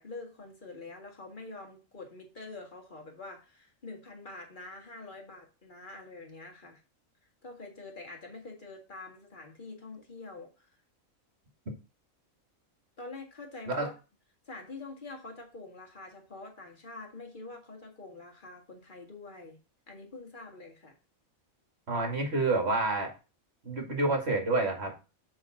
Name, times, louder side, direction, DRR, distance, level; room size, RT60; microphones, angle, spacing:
voice 1, 0.0-6.8 7.4-10.7 13.0-13.9 14.5-19.6 19.9-21.0, left 3 dB, 35° left, 1.9 m, -46 dB
voice 2, 21.9-23.1 23.6-25.0, right 2 dB, 50° right, 2.4 m, -28 dB
7.4 x 3.8 x 6.0 m
omnidirectional pair, 1.4 m